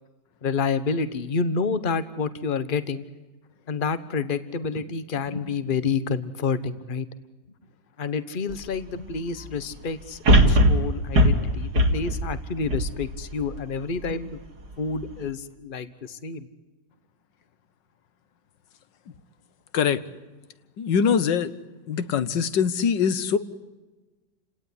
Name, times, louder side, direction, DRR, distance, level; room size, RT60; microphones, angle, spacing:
voice 1, 0.4-3.0 3.7-7.1 8.0-14.4 14.8-16.5, left 5 dB, 30° left, 13 dB, 1.3 m, -29 dB
sound 1, 8.5-8.6 10.3-13.6 14.1-14.2, equal, 60° right, 3.0 m, -19 dB
voice 2, 20.8-21.5 21.9-23.4, left 7 dB, 75° left, 14 dB, 1.8 m, -23 dB
30.0 x 18.0 x 9.9 m, 1.2 s
omnidirectional pair, 2.0 m